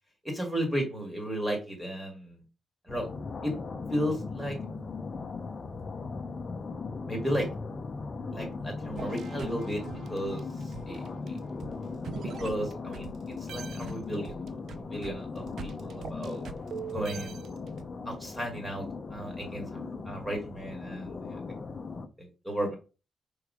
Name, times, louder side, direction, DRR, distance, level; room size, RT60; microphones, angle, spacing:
voice 1, 0.2-2.4 2.8-3.1 3.4-3.5 3.9-4.6 7.1-7.5 8.3-9.8 10.1-11.0 11.3-11.4 12.2-13.1 13.4-16.4 16.9-17.4 18.0-18.9 19.1-21.4 22.2-22.7, equal, 10° right, 2 dB, 1.8 m, -34 dB
sound 1, 2.9-22.1, left 4 dB, 30° left, 0.7 m, -38 dB
sound 2, 9.0-13.2 13.5-17.8, right 7 dB, 60° right, 0.5 m, -43 dB
5.2 x 3.9 x 4.9 m, 0.32 s
wide cardioid pair, 165°, 0 cm